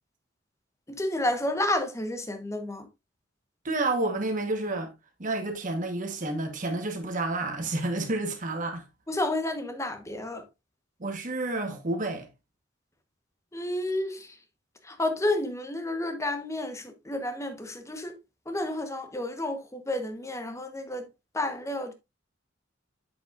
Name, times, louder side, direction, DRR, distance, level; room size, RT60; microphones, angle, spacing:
voice 1, 1.0-2.9 9.1-10.4 13.5-14.3 14.9-18.1 18.5-21.1 21.3-21.9, left 1 dB, 15° left, 1.1 m, -30 dB
voice 2, 3.6-4.9 5.2-8.8 11.0-12.3, right 2 dB, 45° right, 1.2 m, -30 dB
7.9 x 6.8 x 2.5 m
head